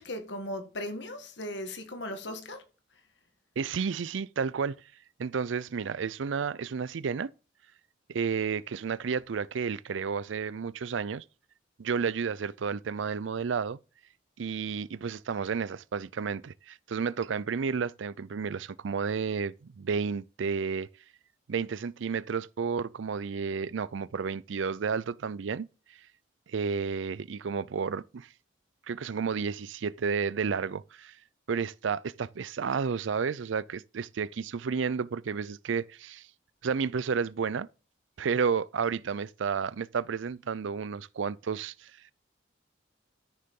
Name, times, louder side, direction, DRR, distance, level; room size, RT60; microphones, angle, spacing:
voice 1, 0.0-2.6, left 1 dB, 65° left, 1.8 m, -37 dB
voice 2, 3.6-4.8 5.2-7.3 8.1-11.2 11.8-13.8 14.4-20.9 21.5-25.7 26.5-28.3 28.9-31.2 31.5-36.3 36.6-37.7 38.2-41.9, right 6 dB, 80° right, 0.5 m, -31 dB
13.0 x 6.7 x 3.7 m
head